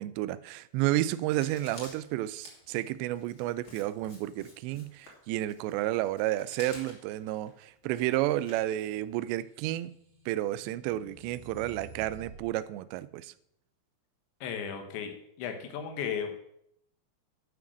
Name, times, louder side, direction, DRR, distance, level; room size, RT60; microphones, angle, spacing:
voice 1, 0.0-9.9 10.3-13.3, right 15 dB, 85° right, 2.7 m, -31 dB
Writing, 1.3-9.3, left 2 dB, 35° left, 2.7 m, -52 dB
sound 1, 9.6-12.5, right 3 dB, 60° right, 3.8 m, -50 dB
voice 2, 14.4-16.3, left 7 dB, 90° left, 3.6 m, -35 dB
11.5 x 6.4 x 6.3 m
omnidirectional pair, 5.0 m